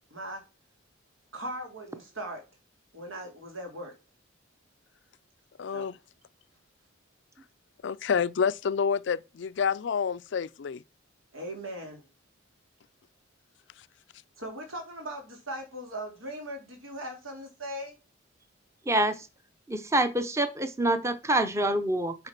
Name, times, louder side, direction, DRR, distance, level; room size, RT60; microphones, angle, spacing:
voice 1, 0.1-0.4 1.3-2.4 2.9-3.9 5.7-5.9 11.3-12.0 14.4-18.0, right 1 dB, 90° right, 3.2 m, -39 dB
voice 2, 5.6-6.0 7.8-10.8, left 6 dB, 60° left, 0.4 m, -28 dB
voice 3, 18.9-19.3 19.7-22.1, right 1 dB, 15° right, 0.7 m, -26 dB
7.9 x 4.9 x 5.9 m
head